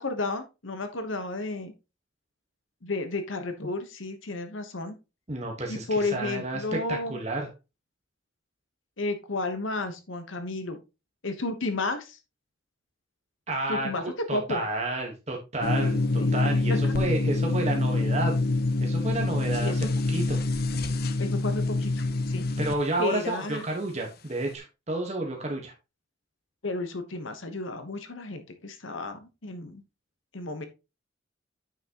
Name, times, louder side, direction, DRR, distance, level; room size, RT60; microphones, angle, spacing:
voice 1, 0.0-1.7 2.8-4.9 5.7-7.2 9.0-10.8 11.2-12.2 13.7-14.0 14.3-14.6 16.2-16.3 16.7-16.9 19.6-19.9 21.2-22.5 23.0-23.6 26.6-29.8 30.3-30.7, left 2 dB, 85° left, 8 dB, 1.1 m, -32 dB
voice 2, 5.3-7.5 13.5-13.9 14.3-18.3 18.8-20.4 22.6-25.7, right 2 dB, 35° right, 1 dB, 1.4 m, -31 dB
sound 1, 15.6-22.7, left 2 dB, 50° left, 0.7 m, -26 dB
8.9 x 5.9 x 3.0 m, 0.27 s
head